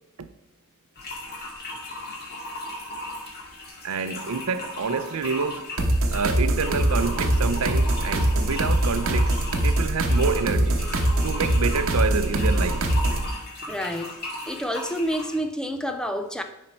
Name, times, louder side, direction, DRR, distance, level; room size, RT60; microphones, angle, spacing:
water in wc or piss, 1.0-15.4, left 1 dB, 50° left, 2.2 m, -37 dB
voice 1, 3.8-5.7 6.1-9.4 9.6-10.8 11.2-12.9, right 5 dB, 85° right, 0.6 m, -27 dB
sound 1, 5.8-13.3, right 1 dB, 65° right, 1.0 m, -23 dB
voice 2, 13.7-14.1 14.5-16.4, equal, 5° left, 0.5 m, -28 dB
10.0 x 4.4 x 4.4 m
head